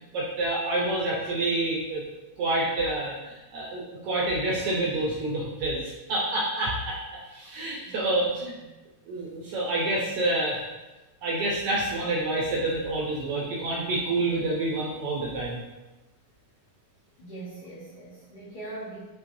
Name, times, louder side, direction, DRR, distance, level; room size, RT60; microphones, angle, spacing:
voice 1, 0.1-2.0 2.4-7.0 7.3-8.5 9.1-10.6 11.2-15.6, right 2 dB, 80° right, -4 dB, 1.3 m, -28 dB
voice 2, 7.8-8.3 8.6-8.8 17.2-19.1, right 2 dB, 90° left, -9 dB, 0.8 m, -42 dB
5.9 x 3.4 x 2.6 m, 1.1 s
omnidirectional pair, 3.4 m